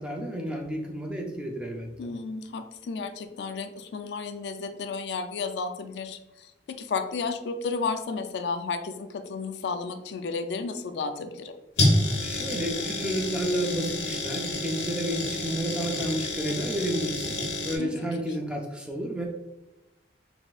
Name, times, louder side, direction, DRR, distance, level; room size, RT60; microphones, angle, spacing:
voice 1, 0.0-2.1 12.2-19.2, right 1 dB, 5° right, 1 dB, 0.4 m, -31 dB
voice 2, 2.0-11.6 17.8-17.9 18.2-18.3, left 4 dB, 70° left, 8 dB, 0.3 m, -33 dB
sound 1, 11.8-17.8, left 2 dB, 85° left, 1.0 m, -28 dB
4.0 x 3.4 x 2.4 m, 0.96 s
head